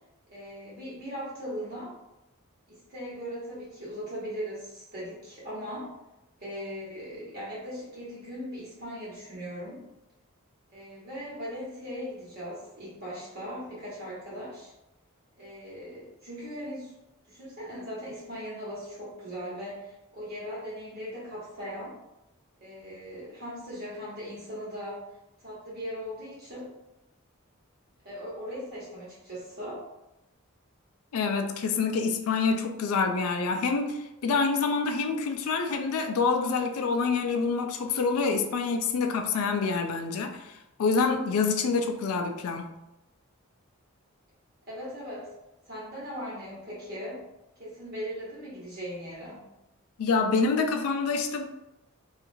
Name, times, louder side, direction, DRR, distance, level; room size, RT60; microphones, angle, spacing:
voice 1, 0.3-1.9 2.7-5.9 6.4-9.8 10.7-14.7 15.4-16.9 17.3-22.0 22.6-25.0 25.4-26.7 28.0-29.8 44.6-45.3 45.6-47.2 47.6-49.4, equal, 45° right, -7 dB, 1.3 m, -39 dB
voice 2, 31.1-42.7 50.0-51.4, left 4 dB, 85° left, 6 dB, 0.3 m, -27 dB
2.8 x 2.4 x 2.6 m, 0.94 s
head